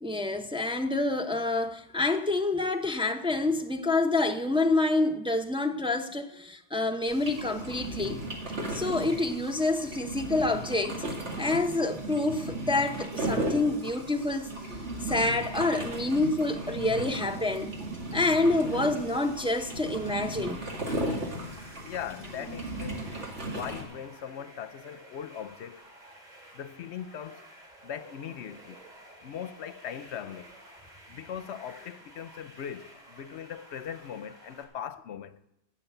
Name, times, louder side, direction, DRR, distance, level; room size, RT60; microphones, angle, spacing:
voice 1, 0.0-8.2 8.7-11.0 11.4-14.5 15.0-17.7 18.1-20.6, left 2 dB, 5° right, 0.4 m, -27 dB
sound 1, 7.1-23.8, right 1 dB, 85° right, 2.4 m, -36 dB
sound 2, 18.6-34.6, right 1 dB, 40° right, 2.6 m, -52 dB
voice 2, 21.8-23.1 23.5-25.8 26.5-27.5 27.8-28.8 29.2-30.5 31.1-35.4, left 9 dB, 80° left, 0.9 m, -40 dB
16.0 x 6.6 x 7.9 m
omnidirectional pair, 1.2 m